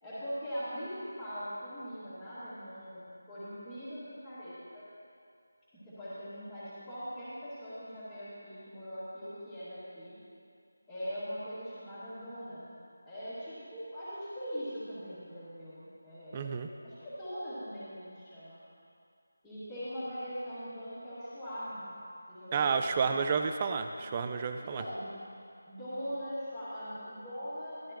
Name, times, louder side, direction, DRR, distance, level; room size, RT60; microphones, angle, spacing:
voice 1, 0.0-4.9 5.7-10.2 10.9-12.7 13.1-18.6 19.4-22.0 22.3-23.2 24.6-25.1 25.7-27.9, equal, 5° left, -20 dB, 2.0 m, -41 dB
voice 2, 16.3-16.7 22.5-24.8, right 5 dB, 15° right, 7 dB, 0.3 m, -30 dB
13.0 x 12.5 x 3.0 m, 2.4 s
figure-of-eight pair, 175°, 0 cm